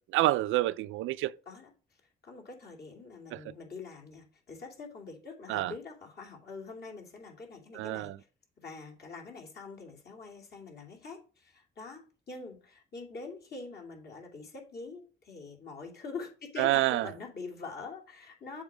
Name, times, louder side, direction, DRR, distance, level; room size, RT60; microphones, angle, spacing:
voice 1, 0.1-1.3 3.3-3.4 5.5-5.7 7.7-8.2 16.6-17.1, right 16 dB, 90° right, 0.5 m, -27 dB
voice 2, 2.2-8.1 8.6-18.6, left 4 dB, 55° left, 2.8 m, -44 dB
7.2 x 4.4 x 6.1 m
cardioid pair, 90°, 20 cm